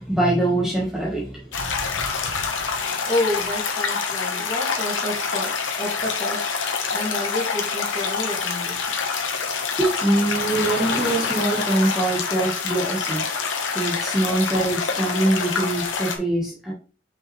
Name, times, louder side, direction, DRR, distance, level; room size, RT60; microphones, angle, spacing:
voice 1, 0.0-1.5 9.8-13.2 13.7-16.7, right 1 dB, 5° right, -6 dB, 1.3 m, -23 dB
sound 1, 1.5-16.2, left 5 dB, 80° left, 1.2 m, -26 dB
voice 2, 2.9-9.4, left 1 dB, 25° left, -5 dB, 2.5 m, -30 dB
sound 2, 6.9-15.8, left 4 dB, 55° left, 0.9 m, -37 dB
5.8 x 5.2 x 3.2 m, 0.37 s
head